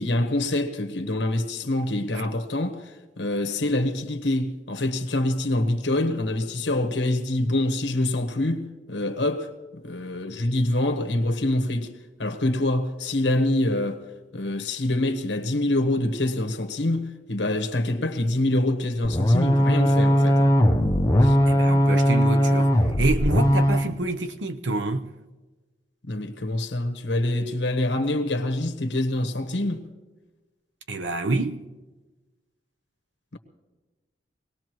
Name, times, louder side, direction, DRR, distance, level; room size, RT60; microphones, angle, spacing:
voice 1, 0.0-2.9 3.2-11.9 12.2-14.0 14.3-20.5 21.2-21.4 26.0-29.8 33.3-33.4, left 1 dB, 75° left, 1.2 m, -25 dB
sound 1, 19.0-23.9, equal, 20° left, 0.8 m, -19 dB
voice 2, 21.5-25.1 30.9-31.6, right 2 dB, 90° right, 0.8 m, -27 dB
24.0 x 18.5 x 3.1 m
head